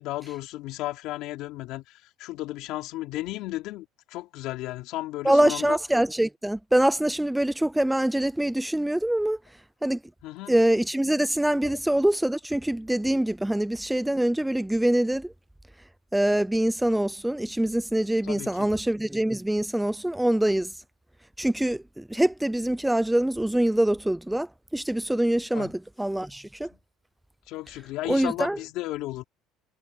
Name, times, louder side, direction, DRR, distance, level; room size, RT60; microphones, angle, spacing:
voice 1, 0.0-5.8 10.2-10.6 18.2-18.7 25.5-25.7 27.5-29.2, left 17 dB, 70° left, 3.4 m, -34 dB
voice 2, 5.2-9.4 9.8-10.0 10.5-15.3 16.1-20.7 21.4-26.7 28.1-28.6, right 1 dB, 5° right, 0.4 m, -24 dB
cardioid pair, 125°, 0 cm